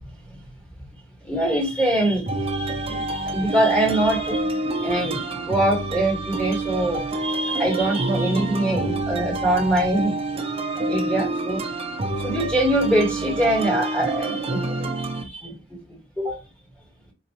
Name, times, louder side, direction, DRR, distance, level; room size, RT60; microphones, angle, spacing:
voice 1, 1.2-4.5 4.7-10.2 10.9-11.6 12.2-15.6 16.2-16.4, right 1 dB, 5° left, 1.7 m, -23 dB
sound 1, 2.3-15.2, right 2 dB, 30° right, 0.5 m, -27 dB
4.6 x 2.8 x 2.9 m
head